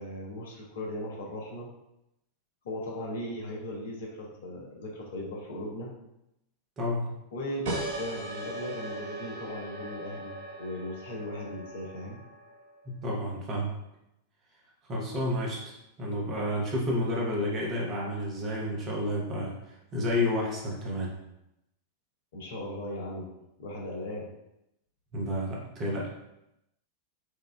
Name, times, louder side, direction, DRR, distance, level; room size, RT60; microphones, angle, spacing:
voice 1, 0.0-1.7 2.6-5.9 7.3-12.2 22.3-23.3 23.6-24.3, left 1 dB, 60° left, -2 dB, 0.8 m, -37 dB
voice 2, 6.8-7.1 12.9-13.7 14.9-21.1 25.1-26.1, left 1 dB, 30° right, -3 dB, 0.9 m, -30 dB
sound 1, 7.6-12.8, right 2 dB, 55° right, 0.6 m, -39 dB
4.5 x 2.4 x 2.2 m, 0.86 s
figure-of-eight pair, 90°, 0 cm